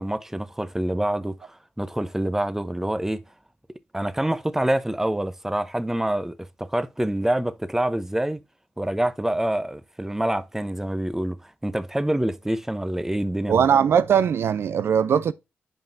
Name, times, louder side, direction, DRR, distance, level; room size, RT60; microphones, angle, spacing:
voice 1, 0.0-3.2 3.9-8.4 8.8-13.7, right 1 dB, 10° right, 0.7 m, -26 dB
voice 2, 13.5-15.3, right 8 dB, 70° right, 0.4 m, -20 dB
8.7 x 5.3 x 2.6 m
supercardioid pair, 45°, 4 cm